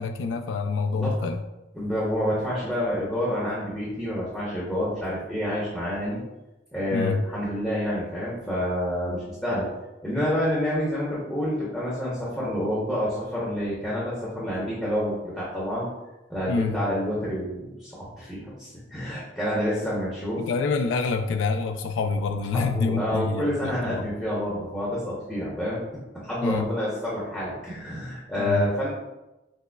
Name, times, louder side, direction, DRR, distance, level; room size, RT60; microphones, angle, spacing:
voice 1, 0.0-1.4 6.9-7.2 16.5-16.8 20.4-24.1 26.4-26.7 28.4-28.6, left 4 dB, 90° left, 6 dB, 0.3 m, -26 dB
voice 2, 1.7-6.2 6.7-9.7 10.0-15.9 16.3-20.4 22.5-25.8 26.1-28.9, equal, 5° left, -8 dB, 0.7 m, -28 dB
6.1 x 2.0 x 2.2 m, 1.0 s
head